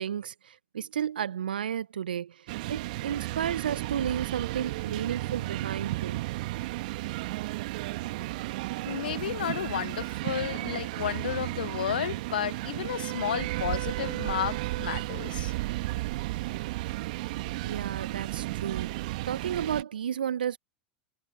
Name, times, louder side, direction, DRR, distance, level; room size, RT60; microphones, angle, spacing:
voice 1, 0.0-6.2 17.6-19.0 19.2-20.6, right 9 dB, 75° right, 0.8 m, -32 dB
sound 1, 2.5-19.8, right 19 dB, 60° right, 2.1 m, -33 dB
voice 2, 8.9-15.5, left 10 dB, 70° left, 0.7 m, -32 dB
figure-of-eight pair, 85°, 5 cm